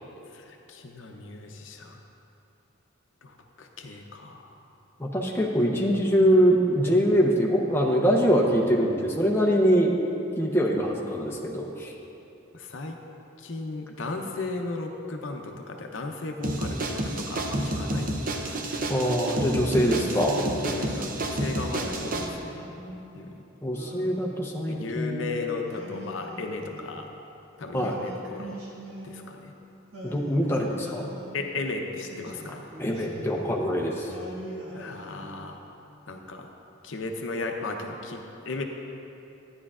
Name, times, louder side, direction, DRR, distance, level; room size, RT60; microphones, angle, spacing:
voice 1, 0.3-2.0 3.2-4.5 12.5-13.0 13.4-18.6 19.9-20.0 20.2-22.6 23.1-23.4 24.7-27.1 27.6-28.6 29.0-29.5 31.3-32.6 34.7-35.6 36.1-36.5 36.8-38.6, left 3 dB, 70° left, 3 dB, 0.7 m, -35 dB
voice 2, 5.0-9.9 10.4-11.9 18.9-20.4 23.6-25.2 27.7-28.0 30.0-31.0 32.8-34.1, equal, 10° left, -2 dB, 0.7 m, -23 dB
sound 1, 16.4-22.3, right 1 dB, 45° right, 0.6 m, -30 dB
Singing, 19.7-21.1 21.8-23.1 23.7-25.0 25.7-27.2 27.7-29.5 29.9-31.5 32.0-33.7 34.1-35.7, right 1 dB, 75° right, 1.7 m, -43 dB
12.5 x 9.6 x 2.4 m, 2.9 s
head